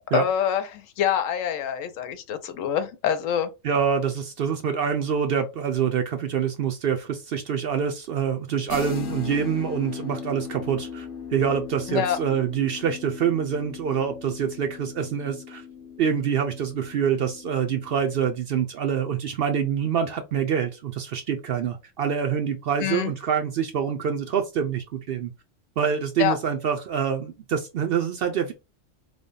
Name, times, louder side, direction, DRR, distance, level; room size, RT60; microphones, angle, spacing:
voice 1, 0.1-3.5 11.9-12.2 22.8-23.1 26.2-26.4, left 9 dB, 85° left, 1.0 m, -25 dB
voice 2, 3.6-15.6 16.0-25.3 25.8-28.5, right 7 dB, 60° right, 0.6 m, -26 dB
sound 1, 8.7-18.3, left 7 dB, 60° left, 1.0 m, -38 dB
3.3 x 2.1 x 3.8 m
omnidirectional pair, 1.3 m